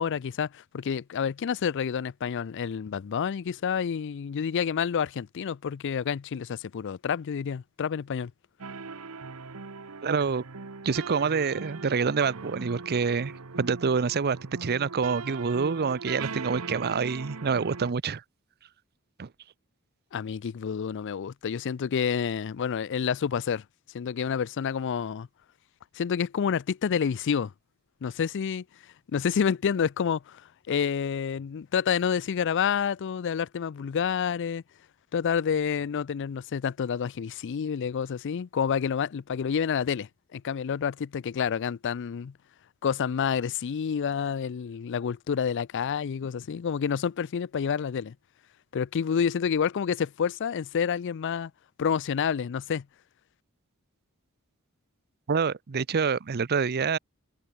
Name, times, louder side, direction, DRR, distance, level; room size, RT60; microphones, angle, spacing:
voice 1, 0.0-8.3 20.1-23.6 23.9-25.3 25.9-27.5 28.0-34.6 35.1-42.3 42.8-48.2 48.7-51.5 51.8-52.9, left 7 dB, 55° left, 0.4 m, -29 dB
sound 1, 8.6-17.9, right 4 dB, 75° right, 1.1 m, -40 dB
voice 2, 10.0-10.5 10.8-13.3 13.6-18.2 19.2-19.3 55.3-57.0, right 5 dB, 45° right, 0.6 m, -27 dB
head